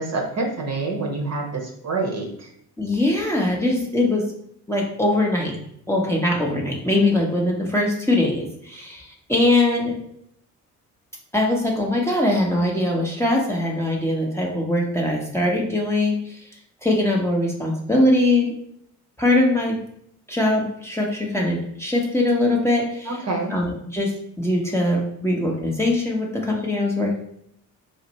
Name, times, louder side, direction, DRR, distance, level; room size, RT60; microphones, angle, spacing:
voice 1, 0.0-2.5 23.1-23.5, right 3 dB, 35° right, 1 dB, 0.8 m, -27 dB
voice 2, 2.8-4.3 4.7-5.6 5.9-10.0 11.3-16.4 16.8-18.5 19.2-19.8 20.3-23.1 23.5-24.1 24.4-27.1, left 1 dB, 5° left, -2 dB, 0.9 m, -21 dB
4.1 x 2.5 x 3.0 m, 0.72 s
figure-of-eight pair, 45°, 46 cm